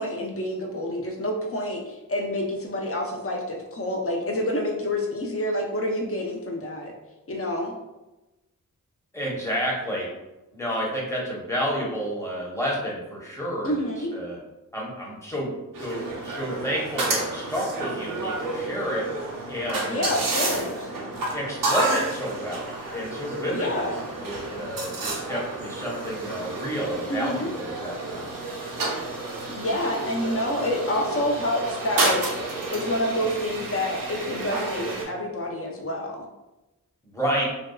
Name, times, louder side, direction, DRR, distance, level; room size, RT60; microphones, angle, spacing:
voice 1, 0.0-6.9 7.3-7.7 13.6-14.1 19.9-20.9 23.5-23.9 27.1-27.5 29.5-32.2 32.7-36.2, left 1 dB, 40° left, 1 dB, 0.6 m, -28 dB
voice 2, 9.1-10.1 10.5-13.9 14.1-14.4 14.7-19.1 19.5-20.2 21.3-24.0 24.2-28.3 37.1-37.5, equal, 10° left, -4 dB, 0.8 m, -30 dB
sound 1, 15.7-35.0, right 2 dB, 70° right, 0.6 m, -31 dB
2.6 x 2.2 x 2.2 m, 1.0 s
wide cardioid pair, 60°, 34 cm